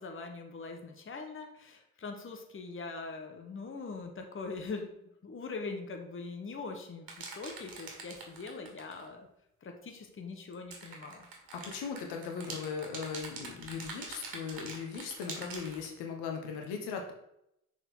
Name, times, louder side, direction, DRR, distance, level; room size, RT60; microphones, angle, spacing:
voice 1, 0.0-4.9 5.2-9.3 9.6-11.3 11.7-11.8, left 4 dB, 30° left, 4 dB, 1.2 m, -42 dB
sound 1, 7.1-9.1 10.5-15.8, right 4 dB, 55° right, 2.1 m, -44 dB
voice 2, 11.6-17.1, left 6 dB, 65° left, 3 dB, 1.4 m, -38 dB
6.6 x 5.0 x 3.8 m, 0.80 s
hypercardioid pair, 50°, 43 cm